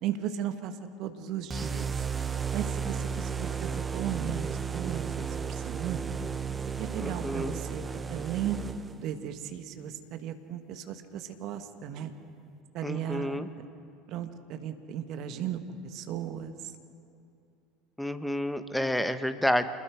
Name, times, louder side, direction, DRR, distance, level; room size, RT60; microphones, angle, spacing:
voice 1, 0.0-1.9 2.5-6.2 6.8-8.6 9.0-12.1 12.7-13.4 14.1-16.7, right 10 dB, 50° right, 8 dB, 1.6 m, -36 dB
sound 1, 1.5-9.1, right 6 dB, 20° right, 1.0 m, -34 dB
voice 2, 7.0-7.6 12.8-13.5 18.0-19.7, left 1 dB, 5° left, 10 dB, 1.2 m, -29 dB
28.0 x 21.0 x 5.1 m, 2.5 s
figure-of-eight pair, 70°, 0 cm